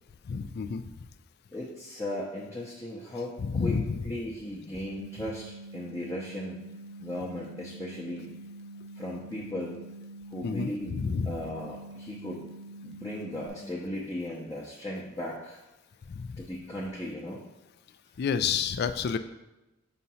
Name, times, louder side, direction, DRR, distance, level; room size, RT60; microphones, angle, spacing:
voice 1, 0.2-0.8 3.4-4.0 10.4-11.3 16.1-16.4 18.2-19.2, left 6 dB, 50° left, 11 dB, 0.3 m, -29 dB
voice 2, 1.5-3.3 3.6-3.8 4.0-6.6 7.0-8.3 8.9-9.8 10.3-12.4 12.8-15.6 16.4-17.4, left 1 dB, 15° left, -6 dB, 0.7 m, -37 dB
sound 1, 5.0-13.5, right 1 dB, 80° right, 0.7 m, -45 dB
6.3 x 2.8 x 5.5 m, 0.98 s
head